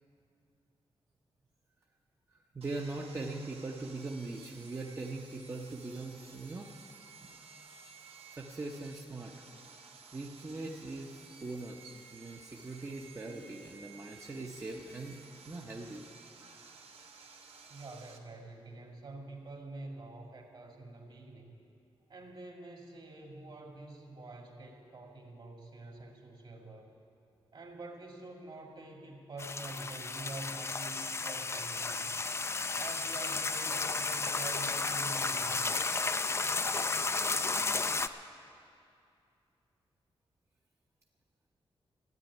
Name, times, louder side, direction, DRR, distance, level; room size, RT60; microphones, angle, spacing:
voice 1, 2.3-6.7 7.2-7.5 8.3-9.3 10.1-15.2 15.5-16.0, right 2 dB, 25° right, -1 dB, 0.8 m, -41 dB
Sawing, 2.6-18.2, right 4 dB, 75° right, 1.2 m, -54 dB
voice 2, 17.7-21.6 22.1-26.9 27.5-32.2 32.7-35.8, right 2 dB, 50° right, 1 dB, 2.2 m, -47 dB
sound 1, 29.4-38.1, left 3 dB, 25° left, 0.4 m, -33 dB
13.5 x 9.1 x 9.5 m, 2.5 s
wide cardioid pair, 110°, 10 cm